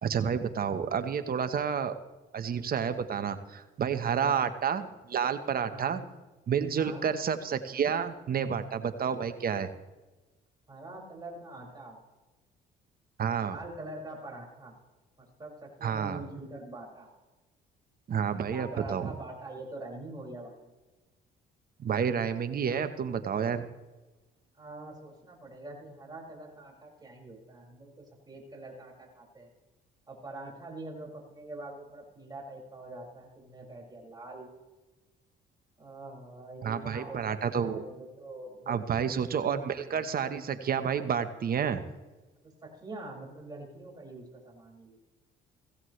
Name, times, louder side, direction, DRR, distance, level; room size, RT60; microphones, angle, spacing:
voice 1, 0.0-1.9 2.3-6.0 6.5-9.7 13.2-13.6 15.8-16.2 18.1-19.1 21.8-23.7 36.6-37.8 38.7-41.9, right 7 dB, 50° right, 10 dB, 1.3 m, -30 dB
voice 2, 4.0-4.4 5.6-6.1 6.7-7.0 10.7-12.0 13.4-14.8 15.2-17.1 18.3-20.7 24.6-29.5 30.1-34.5 35.8-37.2 37.5-39.0 39.4-40.0 42.6-45.0, right 2 dB, 20° right, -3 dB, 6.1 m, -44 dB
16.0 x 16.0 x 3.3 m, 1.1 s
supercardioid pair, 70°, 20 cm